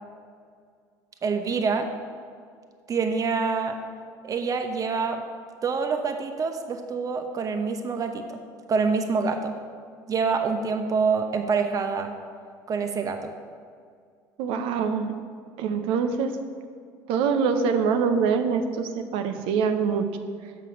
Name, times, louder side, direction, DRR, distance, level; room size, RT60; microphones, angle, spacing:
voice 1, 1.2-1.9 2.9-3.8 4.2-5.2 5.6-8.4 8.7-9.5 10.1-12.1 12.7-13.3, right 5 dB, 35° right, 5 dB, 0.8 m, -26 dB
voice 2, 14.4-15.1 15.6-16.3 17.1-20.1, right 6 dB, 70° right, 7 dB, 0.7 m, -24 dB
6.5 x 5.9 x 6.5 m, 2.1 s
hypercardioid pair, 75°, 10 cm